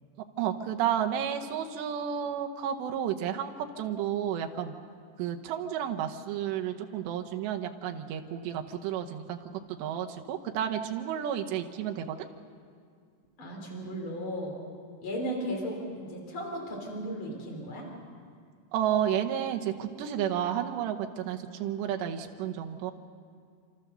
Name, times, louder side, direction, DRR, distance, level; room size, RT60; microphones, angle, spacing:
voice 1, 0.4-4.8 5.2-9.4 9.7-12.3 18.7-22.9, right 9 dB, 75° right, 4 dB, 2.9 m, -31 dB
voice 2, 13.4-14.5 15.0-17.9, equal, 30° left, -1 dB, 4.0 m, -35 dB
29.0 x 13.5 x 6.7 m, 2.2 s
omnidirectional pair, 5.4 m